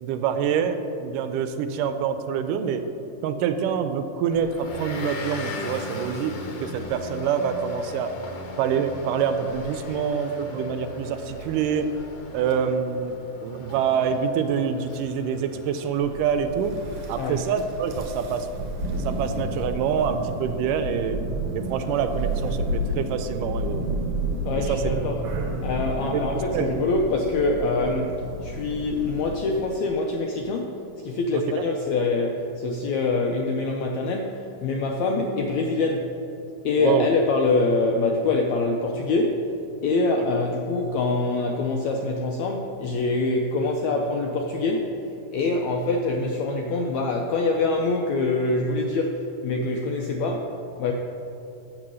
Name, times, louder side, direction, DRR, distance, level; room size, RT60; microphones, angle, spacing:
voice 1, 0.0-2.9 3.2-6.4 6.6-8.2 8.6-11.9 12.3-13.2 13.4-16.8 17.1-18.5 19.0-21.2 21.5-23.9 24.6-24.8 26.0-26.7 31.3-31.6 36.8-37.1 40.2-40.3, right 7 dB, 80° right, 9 dB, 2.1 m, -26 dB
Motor vehicle (road) / Engine, 4.3-18.5, left 2 dB, 65° left, 1.7 m, -39 dB
Thunder, 16.0-29.6, right 1 dB, 65° right, 1.7 m, -31 dB
voice 2, 24.4-25.2 25.6-36.1 36.6-39.5 39.8-45.0 45.3-50.9, left 3 dB, 80° left, 2 dB, 1.6 m, -25 dB
7.8 x 7.5 x 6.2 m, 2.8 s
omnidirectional pair, 3.9 m